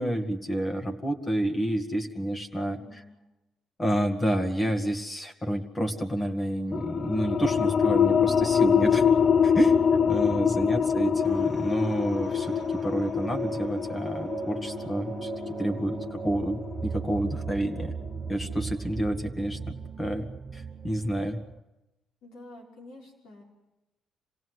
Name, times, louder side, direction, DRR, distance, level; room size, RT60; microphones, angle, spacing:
voice 1, 0.0-3.0 3.8-9.0 9.4-9.8 10.1-12.5 12.8-15.3 15.6-17.9 18.3-21.4, right 1 dB, 25° left, 5 dB, 2.1 m, -29 dB
voice 2, 2.8-3.2 10.6-11.1 22.2-23.4, left 2 dB, 85° left, -2 dB, 5.6 m, -49 dB
sound 1, 6.7-17.9, left 7 dB, 45° left, 0.7 m, -25 dB
sound 2, 11.2-21.6, right 6 dB, 45° right, 1.0 m, -38 dB
26.5 x 17.0 x 8.1 m, 1.0 s
cardioid pair, 90°, 0 cm